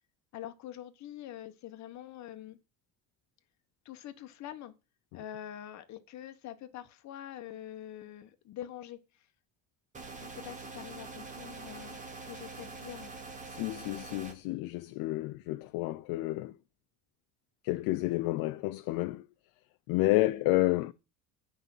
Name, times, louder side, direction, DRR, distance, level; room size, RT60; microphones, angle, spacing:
voice 1, 0.3-2.6 3.8-4.7 5.1-9.3 10.2-13.2 20.0-20.4, left 12 dB, 50° left, 1.2 m, -45 dB
sound 1, 9.9-14.3, right 3 dB, 20° right, 1.8 m, -44 dB
voice 2, 13.5-16.5 17.6-19.3 19.9-20.9, left 18 dB, 70° left, 0.6 m, -30 dB
8.3 x 5.6 x 7.6 m
cardioid pair, 155°, 37 cm